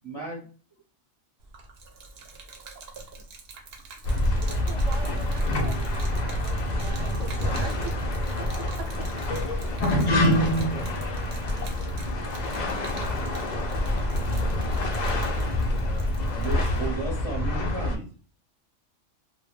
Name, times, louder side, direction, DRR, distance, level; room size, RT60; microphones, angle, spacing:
voice 1, 0.0-0.4 16.4-18.0, right 3 dB, 30° right, -3 dB, 0.7 m, -34 dB
Gurgling / Liquid, 1.4-16.9, right 4 dB, 65° right, 0.7 m, -46 dB
sound 1, 4.0-18.0, left 1 dB, 80° left, 0.4 m, -26 dB
voice 2, 4.3-7.9 8.4-8.5 8.8-8.9, right 6 dB, 85° right, 3 dB, 1.0 m, -41 dB
voice 3, 9.3-16.5, left 4 dB, 35° left, 0 dB, 0.6 m, -45 dB
2.2 x 2.1 x 3.1 m, 0.39 s
omnidirectional pair, 1.3 m